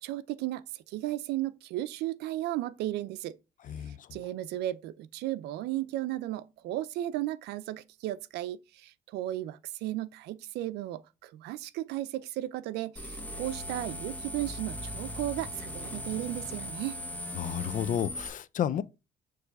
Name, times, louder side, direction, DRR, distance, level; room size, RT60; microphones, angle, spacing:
voice 1, 0.0-3.4 3.9-17.0, right 14 dB, 80° right, 0.5 m, -35 dB
voice 2, 3.7-4.1 17.3-18.8, left 9 dB, 50° left, 0.6 m, -31 dB
sound 1, 13.0-18.3, equal, 10° left, 1.9 m, -38 dB
6.9 x 3.2 x 4.7 m
cardioid pair, 110°, 17 cm